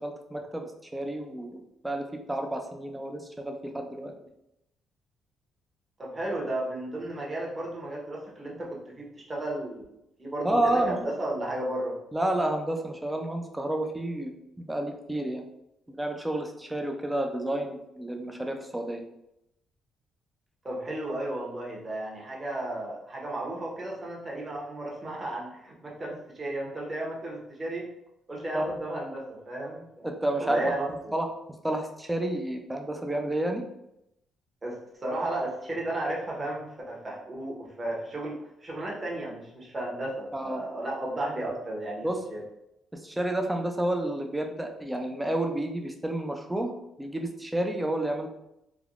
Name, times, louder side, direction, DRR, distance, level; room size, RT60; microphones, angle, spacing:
voice 1, 0.0-4.1 10.4-11.0 12.1-15.4 15.9-19.0 28.5-28.7 30.0-30.7 31.1-31.3 31.6-33.6 40.3-40.6 42.0-42.2 42.9-46.7 47.0-48.3, right 1 dB, 10° right, 3 dB, 0.5 m, -30 dB
voice 2, 6.0-9.9 10.2-12.0 20.6-27.8 28.3-30.1 30.4-30.9 34.6-42.4, right 1 dB, 30° right, -3 dB, 1.0 m, -34 dB
3.3 x 2.2 x 2.5 m, 0.83 s
cardioid pair, 90°, 0 cm